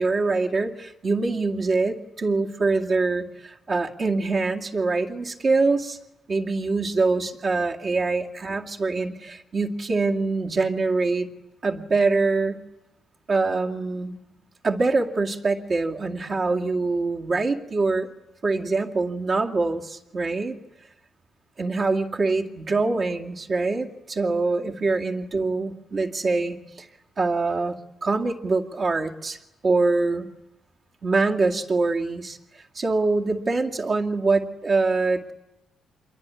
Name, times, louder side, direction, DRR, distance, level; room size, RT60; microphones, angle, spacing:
voice 1, 0.0-6.0 6.3-11.3 11.6-12.6 13.3-14.2 14.6-18.1 18.4-20.6 21.6-26.9 27.2-27.8 28.0-29.4 29.6-30.3 31.0-35.3, right 3 dB, 45° right, -1 dB, 2.3 m, -24 dB
26.5 x 23.0 x 9.6 m, 0.93 s
cardioid pair, 90°, 0 cm